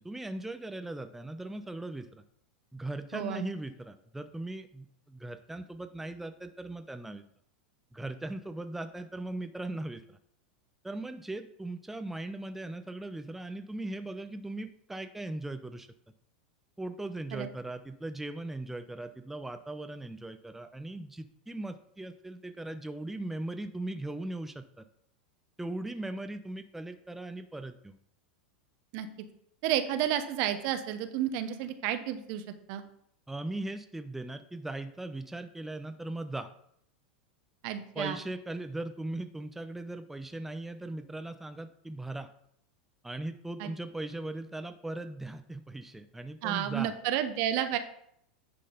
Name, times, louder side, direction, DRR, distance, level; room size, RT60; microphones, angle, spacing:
voice 1, 0.0-2.2 2.7-7.2 7.9-10.2 10.8-15.9 16.8-24.8 25.6-28.0 33.3-36.5 37.9-42.3 43.0-46.9, right 2 dB, 5° right, 8 dB, 0.5 m, -39 dB
voice 2, 3.1-3.5 17.3-17.5 28.9-29.1 29.6-32.8 37.6-38.2 43.6-43.7 46.4-47.8, right 11 dB, 55° right, 9 dB, 0.9 m, -31 dB
10.0 x 3.8 x 5.1 m, 0.70 s
hypercardioid pair, 95°, 5 cm